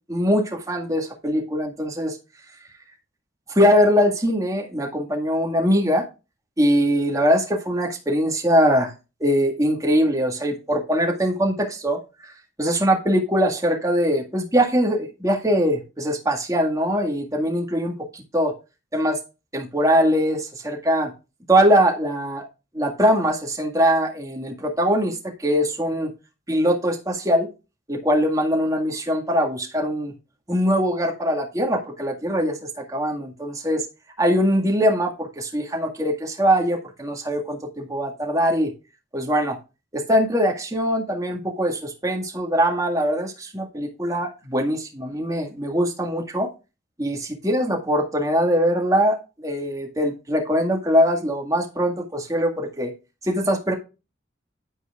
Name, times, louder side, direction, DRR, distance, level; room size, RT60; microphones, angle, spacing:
voice 1, 0.1-2.2 3.5-6.0 6.6-8.9 9.2-12.3 12.6-18.5 18.9-19.2 19.5-21.1 21.5-22.5 22.7-26.1 26.5-27.5 27.9-30.1 30.5-33.8 34.2-38.7 39.1-39.6 39.9-46.5 47.0-49.2 49.4-52.9 53.2-53.7, equal, 15° right, 1 dB, 1.9 m, -22 dB
9.6 x 9.6 x 2.5 m, 0.28 s
head